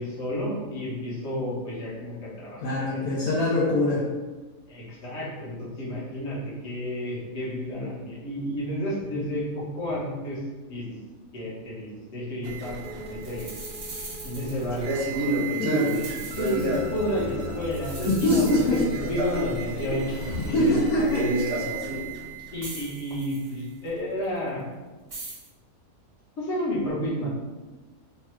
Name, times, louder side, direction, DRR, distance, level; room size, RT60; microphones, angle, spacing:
voice 1, 0.0-2.6 2.9-3.4 4.7-10.4 10.7-10.8 11.3-13.5 14.2-15.6 16.1-20.8 21.1-21.6 22.5-24.6 26.4-27.3, equal, 50° left, -6 dB, 1.4 m, -31 dB
voice 2, 2.6-4.0 15.6-16.0 16.3-16.4 18.1-18.8 20.5-21.3, left 1 dB, 75° left, -5 dB, 1.1 m, -23 dB
sound 1, 12.4-24.3, right 3 dB, 80° right, 0.5 m, -38 dB
sound 2, 12.8-12.9 13.2-15.2 15.6-17.2 17.7-19.2 20.1-20.2 20.8-20.9 21.5-21.6 22.6-23.9 25.1-25.5, right 2 dB, 35° right, 0.6 m, -42 dB
Male speech man speaking, 14.7-17.7 18.0-22.1, right 2 dB, 60° right, 1.1 m, -30 dB
3.2 x 2.3 x 4.4 m, 1.2 s
omnidirectional pair, 1.6 m